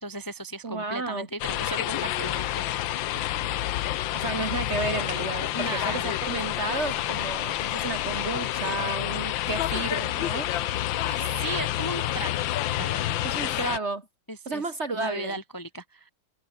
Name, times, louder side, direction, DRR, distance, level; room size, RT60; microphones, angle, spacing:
voice 1, 0.0-2.6 5.5-6.2 11.0-12.4 12.8-13.6 14.3-14.6 14.9-16.1, right 2 dB, 10° left, 1.3 m, -36 dB
voice 2, 0.6-1.3 4.1-10.5 13.2-14.0 14.4-15.4, right 3 dB, 35° right, 1.6 m, -32 dB
sound 1, 1.4-13.8, left 13 dB, 75° left, 1.5 m, -29 dB
omnidirectional pair, 2.2 m